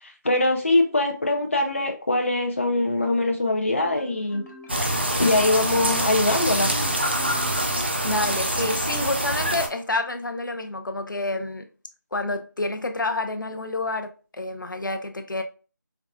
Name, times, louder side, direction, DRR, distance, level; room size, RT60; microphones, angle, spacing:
voice 1, 0.0-4.4 5.2-6.7, left 2 dB, 40° left, 0.5 m, -22 dB
Marimba xylophone, 3.8-8.9, left 1 dB, 55° left, 1.4 m, -43 dB
sound 1, 4.7-9.7, right 1 dB, 35° right, 0.4 m, -25 dB
voice 2, 8.0-11.7 12.1-15.4, left 2 dB, 80° left, 0.6 m, -28 dB
4.6 x 2.4 x 2.2 m
figure-of-eight pair, 175°, 11 cm